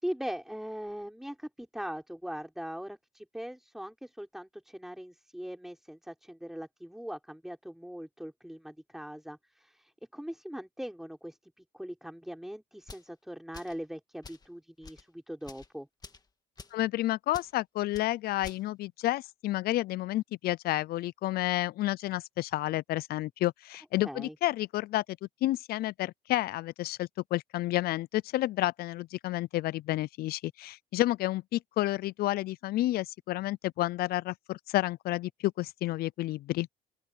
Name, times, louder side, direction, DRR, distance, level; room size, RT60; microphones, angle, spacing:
voice 1, 0.0-15.9 24.0-24.4, equal, ahead, 4.7 m, -41 dB
sound 1, 12.8-13.1 13.5-13.8 14.2-14.5 14.8-15.0 15.4-15.7 16.0-16.2 16.6-16.8 17.3-17.5 17.9-18.1 18.4-18.6, left 4 dB, 25° left, 1.9 m, -48 dB
voice 2, 16.7-25.0 25.4-36.7, left 16 dB, 65° left, 0.5 m, -30 dB
open air
cardioid pair, 110°, 17 cm